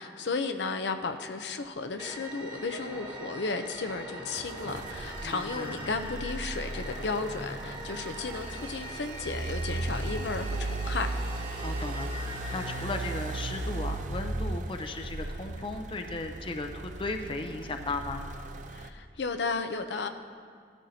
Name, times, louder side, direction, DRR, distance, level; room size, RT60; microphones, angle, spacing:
voice 1, 0.0-11.1 18.7-20.1, left 4 dB, 75° left, 7 dB, 0.6 m, -34 dB
sound 1, 2.0-14.5, right 1 dB, 25° right, 1.4 m, -43 dB
sound 2, 4.4-18.9, right 2 dB, 45° right, 0.5 m, -36 dB
voice 2, 5.2-5.9 11.6-18.2, left 2 dB, 30° left, 6 dB, 0.5 m, -36 dB
17.5 x 12.5 x 2.8 m, 2.1 s
head